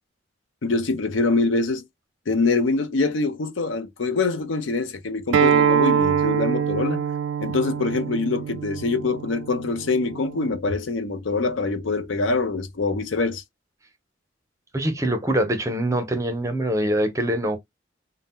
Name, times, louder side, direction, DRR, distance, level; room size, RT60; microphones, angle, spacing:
voice 1, 0.6-1.8 2.3-7.0 7.4-13.4, left 3 dB, 85° left, 0.5 m, -24 dB
Acoustic guitar, 5.3-10.5, right 7 dB, 85° right, 0.3 m, -24 dB
voice 2, 14.7-17.6, right 1 dB, 15° right, 0.5 m, -24 dB
2.7 x 2.0 x 3.5 m
head